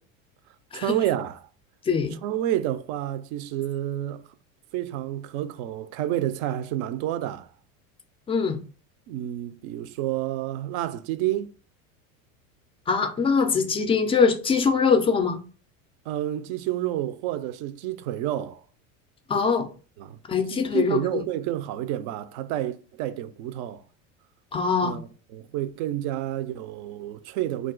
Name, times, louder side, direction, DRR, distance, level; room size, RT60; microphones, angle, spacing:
voice 1, 0.7-1.5 2.1-4.2 4.7-7.5 9.1-11.5 16.1-18.6 20.0-20.2 20.5-23.8 24.8-27.7, right 13 dB, 55° right, 0.4 m, -29 dB
voice 2, 1.9-2.2 8.3-8.6 12.9-15.4 19.3-19.7 20.3-21.2 24.5-25.0, left 5 dB, 15° left, 0.3 m, -22 dB
2.3 x 2.2 x 3.7 m
hypercardioid pair, 90°, 41 cm